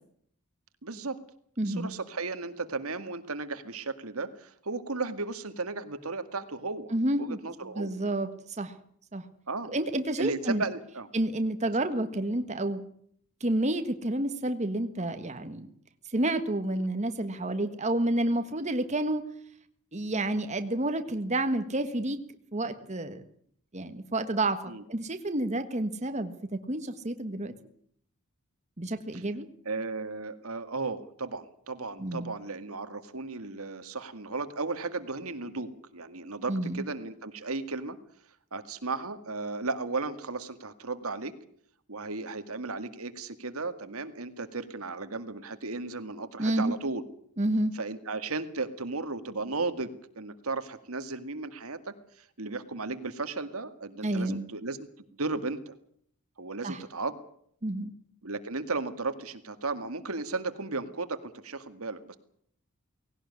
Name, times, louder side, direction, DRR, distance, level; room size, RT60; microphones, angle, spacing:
voice 1, 0.8-1.2 1.6-7.9 9.5-9.7 10.2-11.1 16.7-16.9 24.7-24.8 29.1-29.2 29.7-38.0 38.5-41.3 41.9-47.0 47.7-51.9 52.4-54.8 55.1-55.7 56.4-57.2 58.2-62.2, right 3 dB, 80° right, 10 dB, 2.0 m, -35 dB
voice 2, 1.6-1.9 6.9-7.4 7.7-8.7 9.1-9.2 9.7-10.6 11.1-12.8 13.4-15.7 16.1-19.2 19.9-22.2 22.5-23.2 23.7-27.5 28.8-29.5 32.0-32.3 36.5-36.8 46.4-46.7 47.4-47.7 54.0-54.4 56.6-56.8 57.6-57.9, right 1 dB, 30° right, 8 dB, 1.5 m, -29 dB
19.0 x 17.5 x 9.7 m, 0.65 s
head